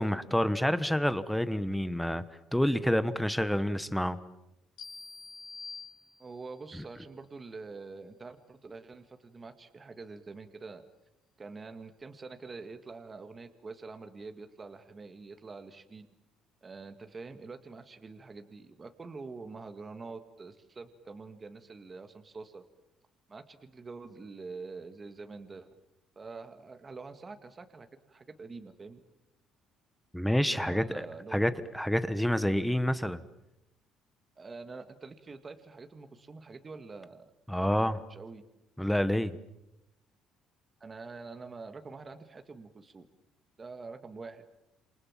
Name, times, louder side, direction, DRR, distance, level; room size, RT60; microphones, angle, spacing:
voice 1, 0.0-2.2 2.5-4.2 30.1-31.1 31.3-33.2 37.5-38.0 38.8-39.4, equal, ahead, 13 dB, 1.2 m, -28 dB
sound 1, 4.8-6.6, left 4 dB, 60° left, 5.8 m, -46 dB
voice 2, 6.2-10.9 11.4-16.1 16.6-22.6 23.3-25.7 26.2-29.0 30.5-31.4 34.4-37.2 38.1-38.4 40.8-43.1 43.6-44.4, right 4 dB, 20° right, 8 dB, 1.9 m, -45 dB
28.5 x 28.0 x 7.4 m, 0.88 s
cardioid pair, 145°, 0 cm